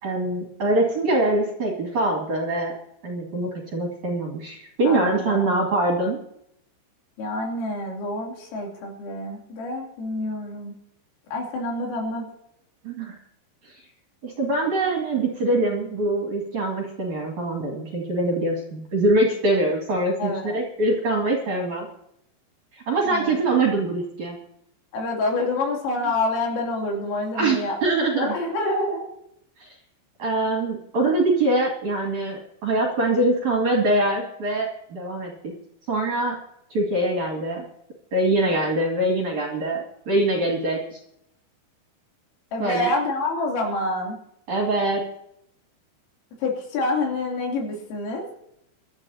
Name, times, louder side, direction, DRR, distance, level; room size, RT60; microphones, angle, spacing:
voice 1, 0.0-2.7 3.0-6.2 12.8-13.1 14.2-21.9 22.7-24.3 27.3-28.3 29.6-29.7 30.2-35.3 35.9-36.4 36.7-37.6 38.1-41.0 42.6-42.9 44.5-45.0, right 2 dB, 45° right, -1 dB, 3.0 m, -23 dB
voice 2, 4.9-5.5 7.2-10.7 11.3-12.3 20.2-20.5 23.1-23.3 24.9-27.8 28.2-29.1 42.5-44.2 46.4-48.3, left 2 dB, 80° left, -1 dB, 5.7 m, -27 dB
25.0 x 12.0 x 2.9 m, 0.76 s
omnidirectional pair, 5.8 m